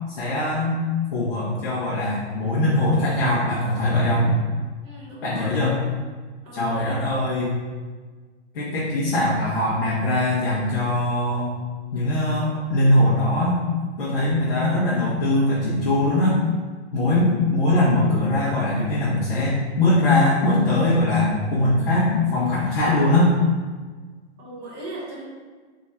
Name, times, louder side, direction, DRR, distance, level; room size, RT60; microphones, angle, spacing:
voice 1, 0.1-0.8 1.1-4.4 5.2-5.8 6.5-7.5 8.5-11.5 11.9-13.6 14.0-16.4 16.9-23.3, left 1 dB, 55° left, -8 dB, 1.2 m, -21 dB
voice 2, 4.8-5.5 6.4-6.8 24.4-25.2, right 2 dB, 15° right, -7 dB, 0.8 m, -38 dB
3.7 x 3.0 x 4.2 m, 1.4 s
hypercardioid pair, 170°, 34 cm